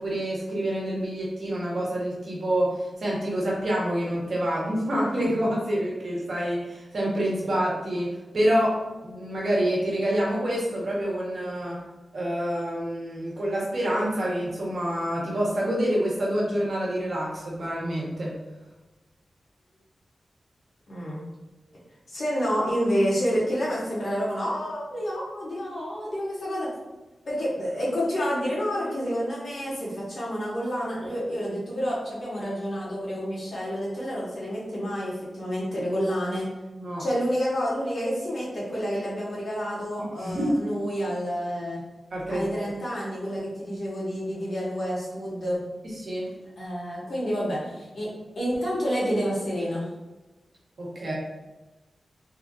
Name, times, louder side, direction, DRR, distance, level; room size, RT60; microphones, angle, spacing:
voice 1, 0.0-11.8 12.1-18.3 36.8-37.0 40.2-40.6 42.1-42.7 45.8-46.3 50.8-51.1, equal, 60° right, -4 dB, 1.0 m, -27 dB
voice 2, 20.9-21.2 22.1-26.7 27.3-36.5 37.0-41.8 42.3-45.6 46.6-48.1 48.3-49.9, equal, 65° left, -6 dB, 1.2 m, -29 dB
3.4 x 2.5 x 2.4 m, 1.1 s
wide cardioid pair, 120°, 0 cm